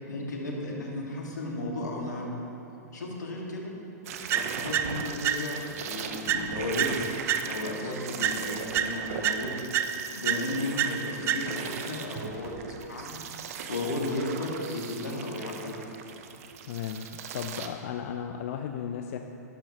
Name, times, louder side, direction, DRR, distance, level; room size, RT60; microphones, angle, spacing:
voice 1, 0.1-2.3 2.9-3.7 4.3-7.0 7.4-9.8 10.1-13.2 13.7-15.8, left 2 dB, 85° left, -1 dB, 1.9 m, -34 dB
sound 1, 4.0-17.7, right 7 dB, 55° right, 0.8 m, -39 dB
sound 2, 4.3-5.8 6.3-7.8 8.2-11.8, right 9 dB, 25° right, 0.4 m, -30 dB
voice 2, 16.7-19.2, left 8 dB, 60° left, 5 dB, 0.5 m, -35 dB
12.0 x 11.5 x 3.0 m, 3.0 s
hypercardioid pair, 115°, 9 cm